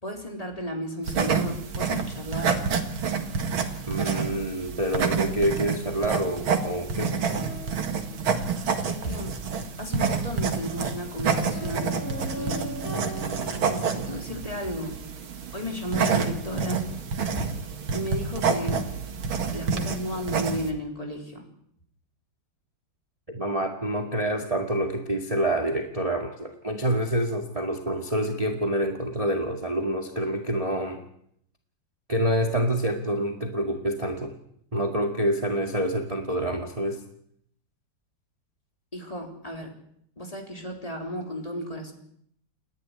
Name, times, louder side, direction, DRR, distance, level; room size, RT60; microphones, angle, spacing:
voice 1, 0.0-2.6 8.9-9.4 9.8-11.9 12.4-12.8 13.7-15.0 15.5-16.8 17.9-18.8 19.5-21.4 38.9-39.7 40.2-41.9, equal, 15° left, 2 dB, 3.7 m, -34 dB
sound 1, 1.0-20.7, right 5 dB, 75° right, 2.6 m, -28 dB
voice 2, 3.9-7.2 23.3-31.0 32.1-34.4 34.7-37.0, right 1 dB, 15° right, 3 dB, 2.0 m, -27 dB
sound 2, 7.1-8.8 11.3-14.5, equal, 40° left, 6.4 m, -39 dB
29.0 x 11.5 x 9.7 m, 0.69 s
omnidirectional pair, 2.2 m